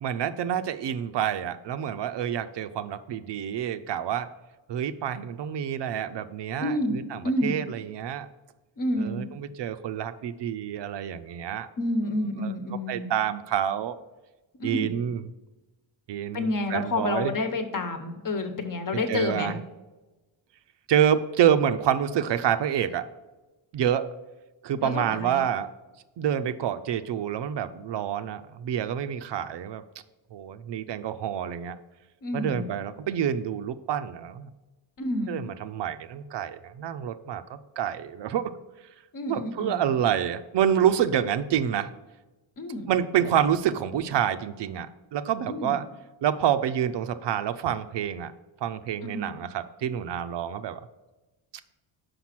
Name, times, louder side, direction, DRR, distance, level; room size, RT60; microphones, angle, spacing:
voice 1, 0.0-4.3 4.7-8.3 9.0-11.7 12.4-12.5 12.9-14.0 14.6-15.2 16.1-17.3 19.1-19.6 20.9-23.0 23.7-24.1 24.6-25.7 26.2-29.8 30.3-31.8 32.3-34.5 35.3-38.5 39.3-41.9 42.9-45.8 46.2-48.3 48.6-50.8, right 9 dB, 60° right, 10 dB, 0.5 m, -27 dB
voice 2, 6.6-7.0 7.2-7.6 8.8-9.3 11.8-13.1 14.6-15.0 16.3-19.6 24.8-25.4 32.2-32.7 35.0-35.4 39.1-39.9 42.6-42.9 45.5-45.8 49.0-49.4, left 2 dB, 45° left, 7 dB, 1.1 m, -29 dB
5.9 x 5.1 x 5.9 m, 1.1 s
cardioid pair, 110°, 47 cm